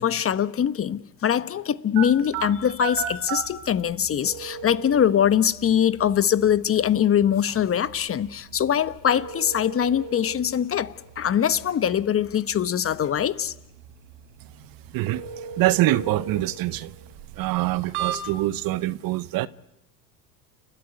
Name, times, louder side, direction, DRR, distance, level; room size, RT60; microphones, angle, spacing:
voice 1, 0.0-13.5, left 9 dB, 30° left, 1.1 m, -23 dB
sound 1, 1.9-18.7, right 7 dB, 75° right, 3.8 m, -37 dB
voice 2, 15.6-16.9 17.4-19.5, right 16 dB, 50° right, 1.0 m, -24 dB
29.5 x 13.5 x 9.8 m
hypercardioid pair, 90°, 45 cm